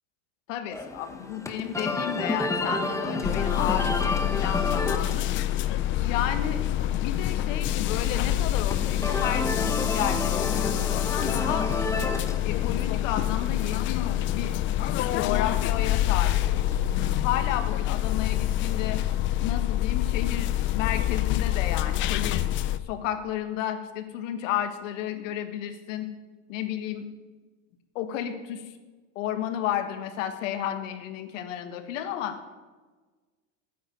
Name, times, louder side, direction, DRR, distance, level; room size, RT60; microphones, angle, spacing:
voice 1, 0.5-5.3 6.0-6.6 6.9-11.7 12.4-14.5 15.0-16.4 17.2-19.0 19.4-22.6 22.9-26.1 26.5-27.1 27.9-28.7 29.1-32.4, left 10 dB, 75° left, 8 dB, 1.6 m, -32 dB
sound 1, 0.7-19.2, left 2 dB, 10° left, 0.9 m, -33 dB
sound 2, 3.2-22.8, left 13 dB, 30° left, 0.4 m, -26 dB
9.5 x 8.5 x 9.8 m, 1.3 s
supercardioid pair, 145°, 38 cm